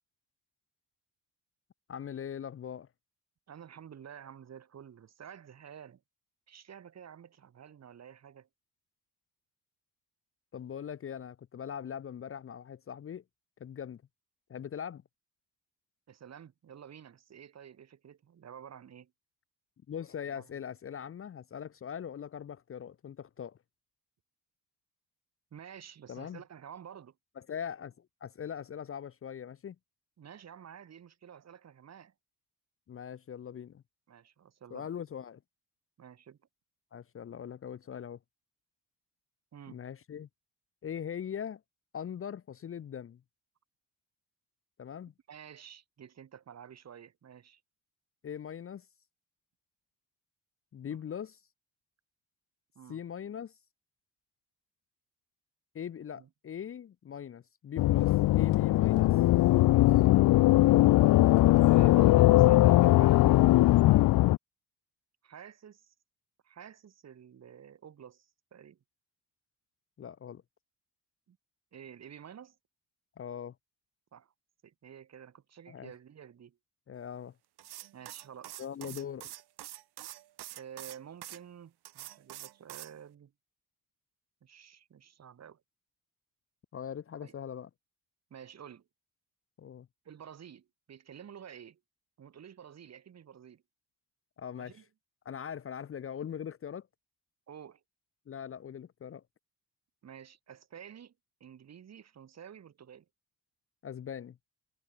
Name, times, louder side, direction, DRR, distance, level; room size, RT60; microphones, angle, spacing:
voice 1, 1.9-2.9 10.5-13.2 13.6-14.0 14.5-15.0 19.9-23.6 26.1-26.4 27.4-29.8 32.9-33.8 34.7-35.4 36.9-38.2 39.7-40.3 40.8-41.6 41.9-43.2 44.8-45.1 48.2-48.9 50.7-51.4 52.9-53.5 55.7-59.2 59.5-59.9 63.9-64.2 70.0-70.4 73.2-73.5 75.7-75.9 76.9-77.3 78.6-79.3 86.7-87.7 89.6-89.9 94.4-94.8 95.2-96.9 98.3-99.2 103.8-104.4, left 8 dB, 35° left, 0.9 m, -41 dB
voice 2, 3.5-6.0 6.5-8.5 16.1-19.1 20.3-20.6 25.5-27.2 30.2-32.1 34.1-34.9 36.0-36.4 39.5-39.8 45.3-47.6 52.7-53.0 56.1-56.3 61.7-63.3 65.2-65.9 66.4-68.8 71.3-71.4 71.7-72.6 74.1-74.3 74.6-76.6 77.9-79.0 80.6-83.3 84.4-85.6 87.2-87.3 88.3-88.9 90.0-91.8 92.2-93.6 94.6-94.9 97.5-97.8 100.0-101.1 101.4-103.1, right 8 dB, 45° right, 4.2 m, -50 dB
sound 1, 57.8-64.4, left 16 dB, 60° left, 0.5 m, -21 dB
sound 2, 77.6-81.4 81.9-82.9, right 14 dB, 85° right, 5.1 m, -45 dB
cardioid pair, 165°, 38 cm